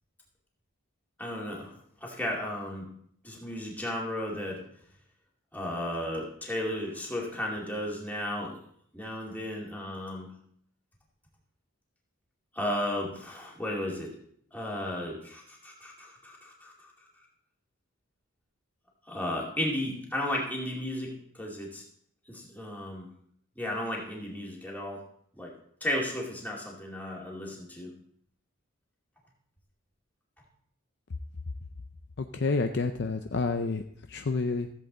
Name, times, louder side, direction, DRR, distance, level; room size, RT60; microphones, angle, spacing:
voice 1, 1.2-1.7 2.0-2.9 3.2-4.6 5.5-8.6 8.9-10.3 12.5-14.1 14.5-16.9 19.1-21.8 22.3-23.1 23.6-25.0 25.4-25.5 25.8-27.9, left 1 dB, 10° left, -3 dB, 2.3 m, -34 dB
voice 2, 32.2-33.8 34.1-34.7, left 3 dB, 50° left, 6 dB, 0.5 m, -29 dB
15.0 x 7.8 x 3.9 m, 0.66 s
head